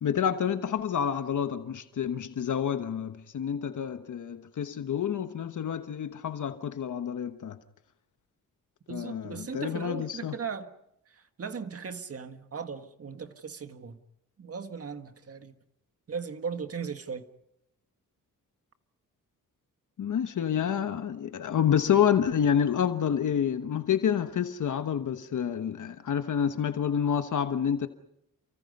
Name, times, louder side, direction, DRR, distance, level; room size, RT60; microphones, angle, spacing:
voice 1, 0.0-7.6 8.9-10.4 20.0-27.9, left 8 dB, 65° left, 1.2 m, -28 dB
voice 2, 8.9-10.7 11.1-14.0 14.4-15.5 16.1-17.3, right 6 dB, 45° right, 1.7 m, -37 dB
29.0 x 24.0 x 5.4 m
cardioid pair, 105°, 33 cm